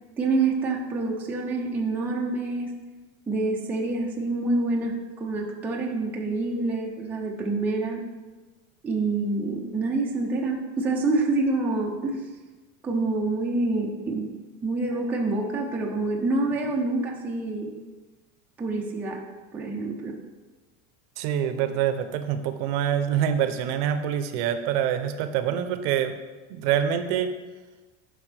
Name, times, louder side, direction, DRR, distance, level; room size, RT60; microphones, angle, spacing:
voice 1, 0.2-2.8 3.3-8.0 8.8-12.2 12.8-14.3 14.6-17.7 18.6-19.2 19.5-20.2, right 3 dB, 5° right, -2 dB, 0.4 m, -27 dB
voice 2, 21.2-26.1 26.5-27.3, right 9 dB, 55° right, 9 dB, 0.6 m, -25 dB
11.0 x 5.3 x 3.3 m, 1.3 s
cardioid pair, 175°, 35 cm